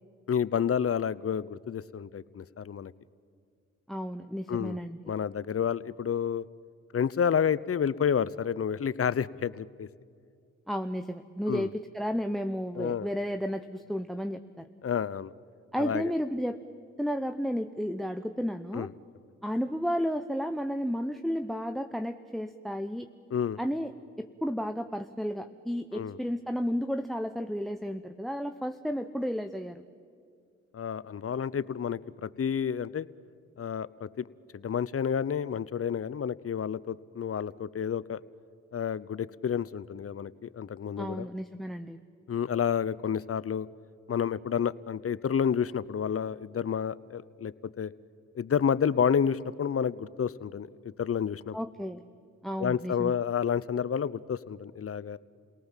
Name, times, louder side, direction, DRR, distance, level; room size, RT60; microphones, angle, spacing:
voice 1, 0.3-2.9 4.5-4.8 5.1-6.5 6.9-9.9 11.5-11.7 12.8-13.1 14.8-15.3 15.8-16.1 18.7-18.9 23.3-23.6 25.9-26.2 30.7-33.1 33.6-34.3 34.5-38.2 38.7-41.3 42.3-43.7 44.1-47.9 48.3-51.6 52.6-55.2, left 7 dB, 45° left, 17 dB, 0.7 m, -30 dB
voice 2, 3.9-5.1 10.7-14.7 15.7-16.6 17.0-18.9 19.4-23.1 23.6-23.9 24.2-29.8 41.0-42.0 51.5-52.0 52.4-53.1, equal, ahead, 10 dB, 0.9 m, -32 dB
29.5 x 18.5 x 7.4 m, 2.3 s
supercardioid pair, 40°, 32 cm